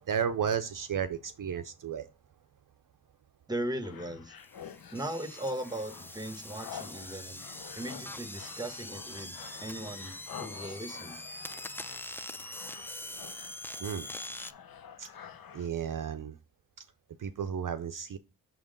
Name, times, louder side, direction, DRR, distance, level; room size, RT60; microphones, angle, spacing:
voice 1, 0.1-2.1 13.8-14.1 15.0-15.1 15.5-16.4 17.2-18.2, right 8 dB, 55° right, 0.5 m, -33 dB
voice 2, 3.5-4.3 4.9-7.4 7.7-11.2, right 1 dB, 10° right, 1.0 m, -38 dB
sound 1, 3.8-15.7, left 8 dB, 65° left, 0.7 m, -49 dB
sound 2, 4.4-14.5, left 1 dB, 5° left, 0.4 m, -43 dB
6.0 x 3.6 x 5.1 m
cardioid pair, 50°, 39 cm